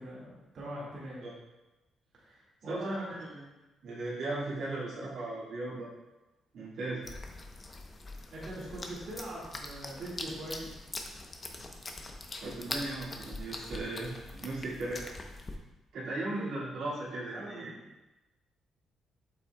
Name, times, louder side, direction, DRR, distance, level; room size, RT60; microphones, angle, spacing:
voice 1, 0.0-1.3 2.1-3.2 8.0-10.8 16.1-17.9, right 1 dB, 55° right, -7 dB, 1.9 m, -43 dB
voice 2, 2.7-3.0 3.3-3.4 3.8-5.9 6.5-7.1 12.4-15.0 15.9-17.7, right 2 dB, 75° right, -8 dB, 2.1 m, -37 dB
sound 1, 7.0-15.6, left 2 dB, 30° left, 0.8 m, -43 dB
7.7 x 5.6 x 2.3 m, 1.1 s
cardioid pair, 90°, 0 cm